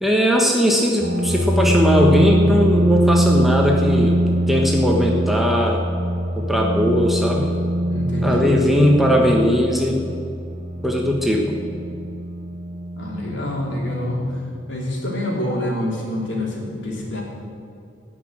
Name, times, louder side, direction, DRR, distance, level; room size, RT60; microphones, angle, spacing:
voice 1, 0.0-4.1 4.5-5.8 6.4-7.6 8.2-10.0 10.8-11.6, equal, ahead, -1 dB, 1.1 m, -19 dB
sound 1, 1.0-14.4, right 1 dB, 35° right, 2.0 m, -22 dB
voice 2, 7.9-8.5 13.0-14.4 14.7-17.2, left 1 dB, 70° left, -2 dB, 3.3 m, -26 dB
18.5 x 6.2 x 8.8 m, 2.5 s
head